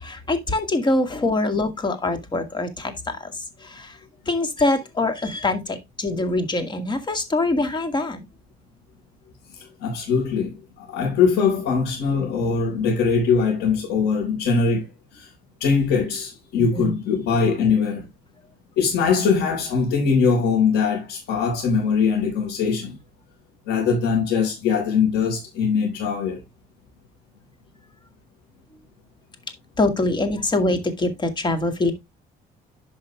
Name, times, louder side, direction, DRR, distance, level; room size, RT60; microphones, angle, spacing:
voice 1, 0.0-3.3 3.6-4.0 4.3-8.3 16.8-16.9 29.8-31.9, left 2 dB, 25° left, 2.2 m, -24 dB
voice 2, 9.8-14.8 15.1-15.3 15.6-18.0 18.8-23.0 23.7-26.4, left 5 dB, 85° left, 5.0 m, -21 dB
11.0 x 5.7 x 3.4 m
cardioid pair, 110°, 17 cm